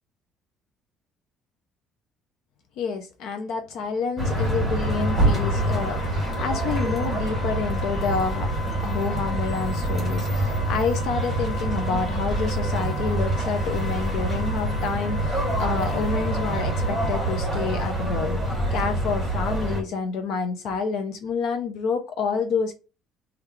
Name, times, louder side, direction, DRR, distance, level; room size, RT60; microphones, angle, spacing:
voice 1, 2.8-8.5 8.8-18.4 18.7-22.7, left 5 dB, 55° left, 0.4 m, -28 dB
sound 1, 4.2-19.8, right 1 dB, 5° right, 1.5 m, -26 dB
Wind instrument woodwind instrument, 4.8-17.5, left 4 dB, 30° left, 0.9 m, -38 dB
3.6 x 2.3 x 3.0 m
cardioid pair, 180°, 0 cm